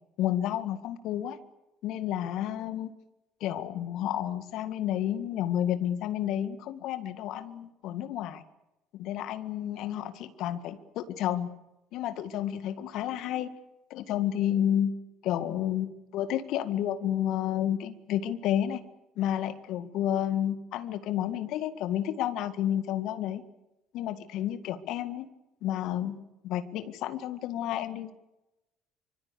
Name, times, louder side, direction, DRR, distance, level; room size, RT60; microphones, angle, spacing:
voice 1, 0.2-1.4 1.8-2.9 3.4-8.4 8.9-11.5 11.9-13.5 13.9-14.9 15.2-18.8 19.2-23.4 23.9-25.3 25.6-26.2 26.4-28.1, left 11 dB, 60° left, 10 dB, 1.9 m, -31 dB
25.0 x 24.5 x 6.9 m, 0.97 s
hypercardioid pair, 60°, 0 cm